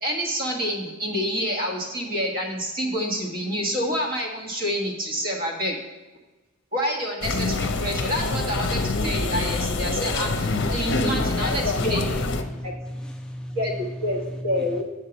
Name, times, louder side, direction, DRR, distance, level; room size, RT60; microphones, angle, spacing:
voice 1, 0.0-5.8 6.7-12.2 12.6-12.7 13.5-14.8, equal, 40° right, 0 dB, 1.5 m, -28 dB
sound 1, 7.2-12.4, left 3 dB, 55° left, 0.6 m, -25 dB
voice 2, 10.9-14.8, equal, 5° left, 2 dB, 0.4 m, -35 dB
7.4 x 4.6 x 7.0 m, 1.2 s
head